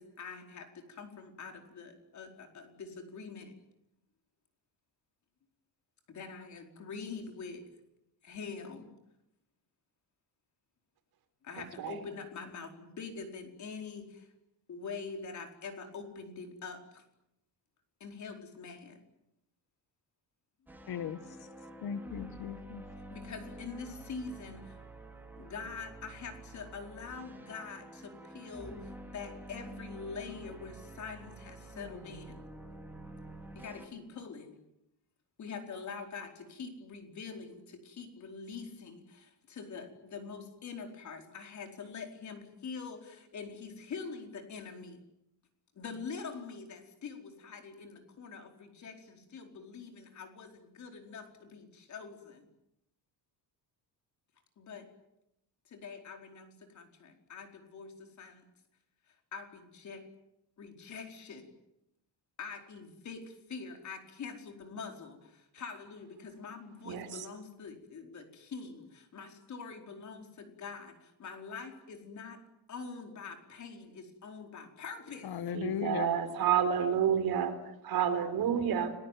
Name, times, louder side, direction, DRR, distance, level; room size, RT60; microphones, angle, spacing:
voice 1, 0.0-3.5 6.1-7.6 8.2-8.9 11.4-14.3 14.7-17.0 18.0-19.0 23.1-24.8 25.4-32.4 33.5-34.6 35.4-45.0 45.7-52.5 54.6-54.9 55.7-58.4 59.1-60.0 60.6-61.5 62.4-72.4 72.7-75.4, left 5 dB, 45° left, 4 dB, 4.7 m, -45 dB
sound 1, 20.7-33.9, right 1 dB, 5° right, 3.6 m, -48 dB
voice 2, 20.9-21.2 21.8-22.8 75.2-76.2, left 8 dB, 60° left, 12 dB, 1.7 m, -36 dB
voice 3, 75.5-78.9, right 8 dB, 60° right, 9 dB, 4.1 m, -29 dB
30.0 x 21.5 x 9.3 m, 0.84 s
cardioid pair, 170°, 42 cm